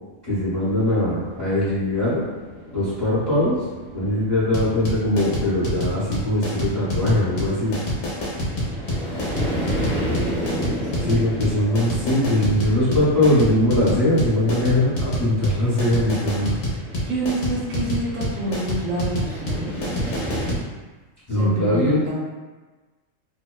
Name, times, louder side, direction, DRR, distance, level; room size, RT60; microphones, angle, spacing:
voice 1, 0.2-2.2 2.7-3.6 3.9-7.8 11.0-16.6 21.3-22.0, left 1 dB, 20° left, -12 dB, 0.8 m, -21 dB
sound 1, 0.6-20.5, equal, ahead, 1.0 m, -34 dB
sound 2, 4.5-20.6, equal, 65° left, 1.0 m, -26 dB
voice 2, 9.4-11.2 17.1-19.7 21.4-22.2, right 2 dB, 80° right, -5 dB, 1.1 m, -29 dB
2.6 x 2.1 x 2.3 m, 1.3 s
omnidirectional pair, 1.4 m